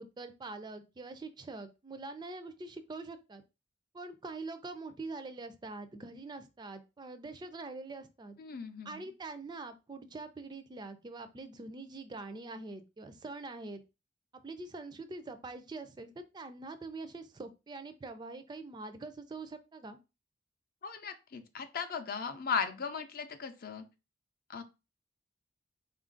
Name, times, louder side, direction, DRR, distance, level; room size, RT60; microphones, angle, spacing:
voice 1, 0.0-3.4 3.9-8.4 8.8-13.8 14.4-20.0, right 3 dB, 25° right, 10 dB, 0.3 m, -44 dB
voice 2, 8.4-9.0 20.8-23.8 24.5-24.6, left 6 dB, 50° left, 8 dB, 0.5 m, -37 dB
3.8 x 2.4 x 3.7 m, 0.27 s
head